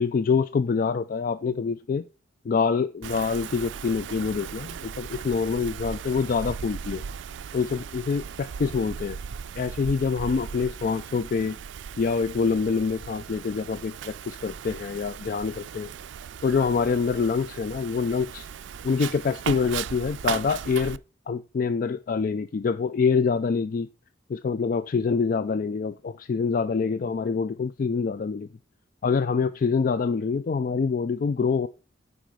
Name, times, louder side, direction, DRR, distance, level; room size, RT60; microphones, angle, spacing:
voice 1, 0.0-2.0 2.4-7.0 7.5-9.2 9.6-11.6 12.0-15.9 16.4-18.5 18.8-21.0 21.3-23.9 24.3-28.5 29.0-31.7, left 5 dB, 45° left, 12 dB, 0.3 m, -26 dB
Wind, 3.0-21.0, right 7 dB, 65° right, 0.4 m, -37 dB
9.0 x 5.0 x 4.7 m, 0.32 s
head